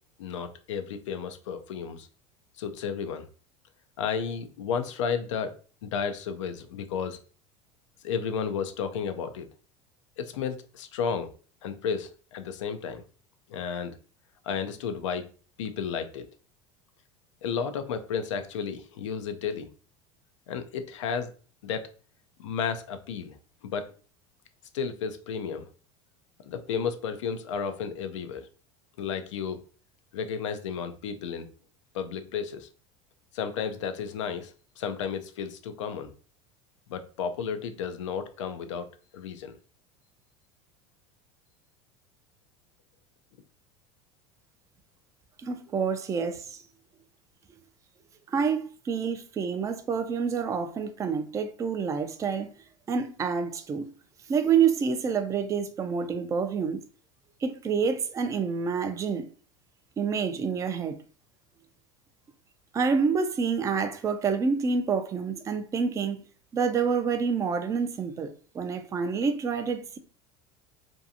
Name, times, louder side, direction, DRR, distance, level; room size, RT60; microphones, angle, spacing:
voice 1, 0.2-2.1 2.6-3.3 4.0-5.5 5.8-7.2 8.0-9.5 10.2-11.3 11.6-13.0 13.5-14.0 14.4-15.3 15.6-16.3 17.4-19.7 20.5-21.3 21.6-21.9 22.4-23.4 23.6-23.9 24.7-25.7 26.5-28.5 29.0-29.6 30.1-31.5 31.9-32.7 33.3-36.1 36.9-38.9 39.1-39.5, left 6 dB, 90° left, 0.4 m, -32 dB
voice 2, 45.4-46.6 48.3-52.5 52.9-53.9 54.3-56.8 57.4-59.3 60.0-61.0 62.7-66.3 66.5-70.0, right 6 dB, 20° right, 0.3 m, -28 dB
2.6 x 2.3 x 2.6 m
supercardioid pair, 100°, 15 cm